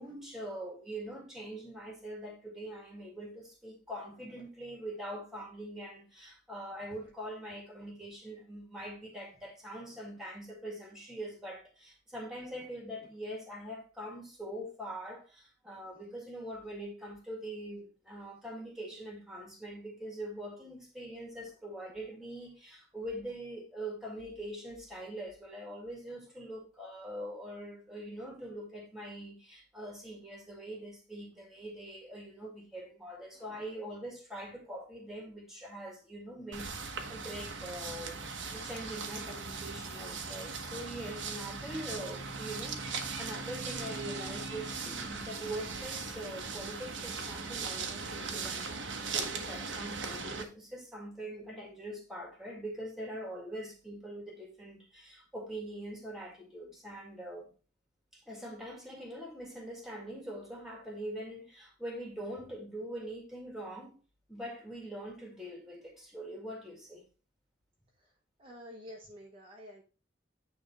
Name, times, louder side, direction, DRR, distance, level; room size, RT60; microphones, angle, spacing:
voice 1, 0.0-57.5 58.1-64.0 64.3-67.0, right 1 dB, 5° right, 2.0 m, -43 dB
voice 2, 33.3-33.7 68.0-69.8, equal, 30° right, 1.0 m, -52 dB
sound 1, 36.5-50.4, right 4 dB, 75° right, 1.1 m, -39 dB
9.2 x 3.5 x 4.5 m
head